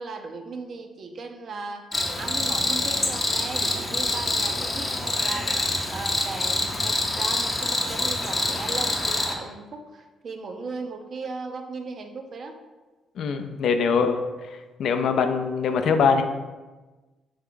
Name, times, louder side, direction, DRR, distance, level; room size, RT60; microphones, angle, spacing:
voice 1, 0.0-12.6, right 4 dB, 50° right, 5 dB, 0.5 m, -37 dB
Cricket, 1.9-9.3, left 2 dB, 20° left, 0.6 m, -26 dB
voice 2, 13.2-14.2 14.8-16.2, left 5 dB, 70° left, 7 dB, 0.4 m, -22 dB
3.5 x 3.3 x 3.7 m, 1.2 s
cardioid pair, 90°, 0 cm